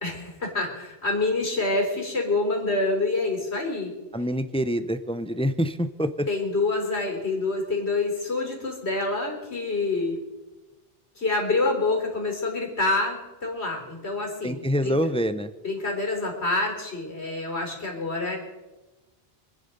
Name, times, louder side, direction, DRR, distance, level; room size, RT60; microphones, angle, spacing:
voice 1, 0.0-3.9 6.3-10.2 11.2-15.0 15.6-18.4, left 3 dB, 80° left, 2 dB, 4.0 m, -27 dB
voice 2, 4.1-6.3 14.4-15.5, equal, 5° left, 11 dB, 0.5 m, -26 dB
26.5 x 9.9 x 5.2 m, 1.1 s
omnidirectional pair, 1.1 m